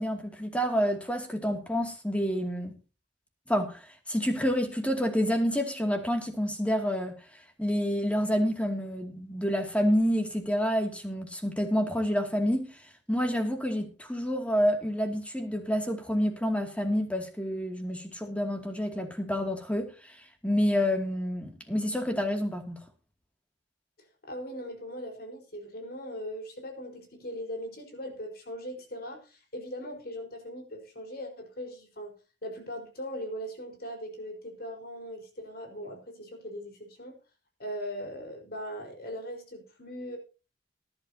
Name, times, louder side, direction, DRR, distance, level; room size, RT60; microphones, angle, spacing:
voice 1, 0.0-2.8 3.5-7.2 7.6-12.8 13.1-20.2 20.4-22.8, equal, 5° left, 2.4 m, -28 dB
voice 2, 24.2-32.1 32.4-37.2 37.6-40.2, equal, 55° left, 4.6 m, -39 dB
19.5 x 11.0 x 2.8 m
head